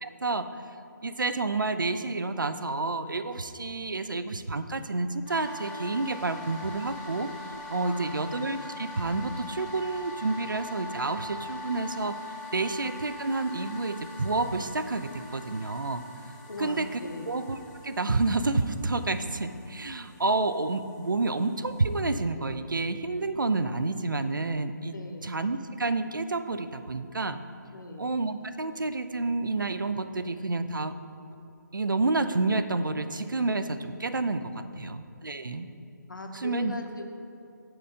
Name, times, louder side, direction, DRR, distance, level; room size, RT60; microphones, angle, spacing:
voice 1, 0.0-0.6 1.0-7.3 7.7-12.2 12.5-16.0 16.6-17.0 17.3-17.6 17.8-25.0 25.2-27.4 28.0-30.9 31.7-35.7 36.3-36.7, right 3 dB, 90° right, 11 dB, 0.4 m, -29 dB
sound 1, 5.3-22.0, left 2 dB, 25° left, 0.8 m, -43 dB
voice 2, 7.8-8.4 16.4-17.3 24.9-25.4 27.7-28.1 34.7-35.0 36.1-37.2, left 2 dB, 80° left, 4 dB, 0.8 m, -40 dB
6.4 x 4.4 x 4.9 m, 2.6 s
figure-of-eight pair, 150°, 10 cm